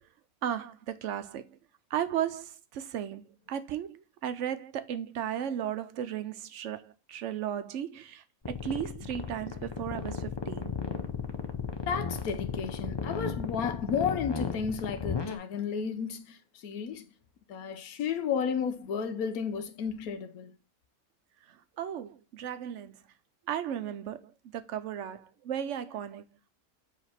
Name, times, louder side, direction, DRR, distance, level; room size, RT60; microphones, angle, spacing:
voice 1, 0.4-1.4 1.9-10.7 21.5-23.0 23.5-26.3, right 10 dB, 65° right, 0.9 m, -35 dB
sound 1, 8.4-15.4, left 5 dB, 35° left, 0.4 m, -34 dB
voice 2, 11.9-16.4 16.6-17.0 17.5-20.5, left 7 dB, 90° left, 1.2 m, -32 dB
4.9 x 3.5 x 5.6 m
omnidirectional pair, 1.5 m